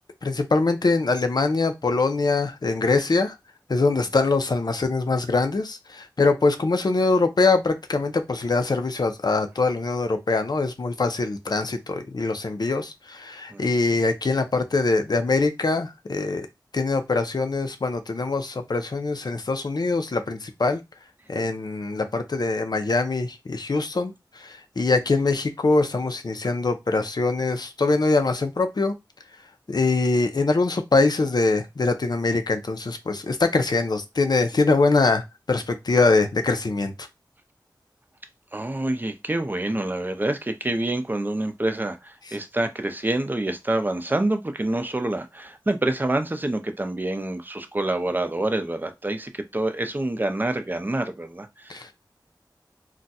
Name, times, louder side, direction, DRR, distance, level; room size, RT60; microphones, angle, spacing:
voice 1, 0.2-3.3 3.7-16.5 16.7-20.8 21.3-28.9 29.7-36.9 51.7-51.9, left 3 dB, 60° left, 0.5 m, -23 dB
voice 2, 38.5-51.9, right 2 dB, 25° right, 0.5 m, -27 dB
2.4 x 2.2 x 4.0 m
wide cardioid pair, 70°, 8 cm